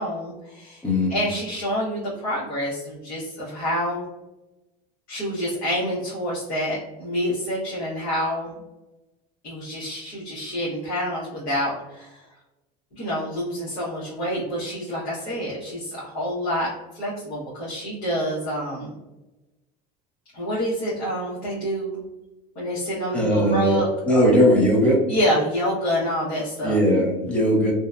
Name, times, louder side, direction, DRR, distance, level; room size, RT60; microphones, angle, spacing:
voice 1, 0.0-0.8 1.1-4.0 5.1-8.6 9.4-12.3 12.9-19.0 20.3-22.0 22.5-24.3 25.1-26.8, equal, 45° left, -8 dB, 0.9 m, -27 dB
voice 2, 0.8-1.1 23.1-25.0 26.6-27.7, equal, 5° left, -3 dB, 0.4 m, -19 dB
2.7 x 2.1 x 2.3 m, 1.0 s
cardioid pair, 180°, 18 cm